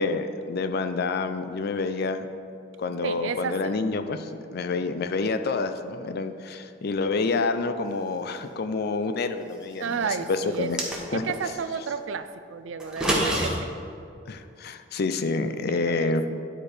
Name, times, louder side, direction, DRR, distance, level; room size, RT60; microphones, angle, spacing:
voice 1, 0.0-2.3 2.8-10.8 11.1-11.2 14.3-16.4, left 3 dB, 55° left, 9 dB, 0.5 m, -28 dB
voice 2, 3.0-3.7 9.8-10.7 11.1-13.7 15.7-16.1, right 6 dB, 75° right, 11 dB, 0.4 m, -32 dB
sound 1, 10.5-11.4 12.8-13.5, right 1 dB, 5° right, 1.1 m, -26 dB
9.9 x 4.4 x 4.9 m, 2.5 s
head